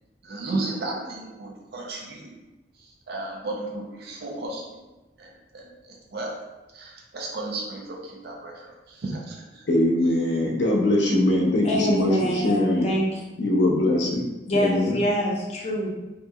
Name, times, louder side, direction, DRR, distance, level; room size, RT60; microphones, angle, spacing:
voice 1, 0.2-2.4 2.8-4.8 5.2-6.5 6.7-9.7, right 2 dB, 60° right, -1 dB, 0.4 m, -34 dB
voice 2, 9.7-12.9 13.4-15.0, left 1 dB, 75° left, 0 dB, 0.6 m, -22 dB
voice 3, 11.6-13.2 14.5-15.9, equal, 35° left, -4 dB, 0.7 m, -25 dB
2.8 x 2.6 x 2.2 m, 1.1 s
head